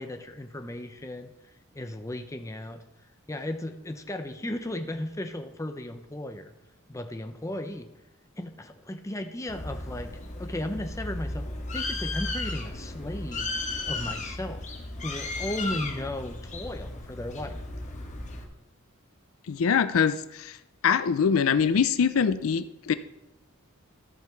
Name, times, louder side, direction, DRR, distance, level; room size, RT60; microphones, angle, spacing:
voice 1, 0.0-1.3 1.7-2.8 3.3-6.5 6.9-7.9 8.4-10.1 10.4-11.5 11.7-13.6 13.9-14.6 15.0-17.6, left 1 dB, 15° left, 6 dB, 0.6 m, -35 dB
Bird, 9.5-18.4, left 2 dB, 35° left, 1.2 m, -35 dB
voice 2, 19.5-20.6 20.8-22.9, left 6 dB, 70° left, 13 dB, 0.4 m, -23 dB
13.5 x 5.7 x 4.5 m, 0.91 s
head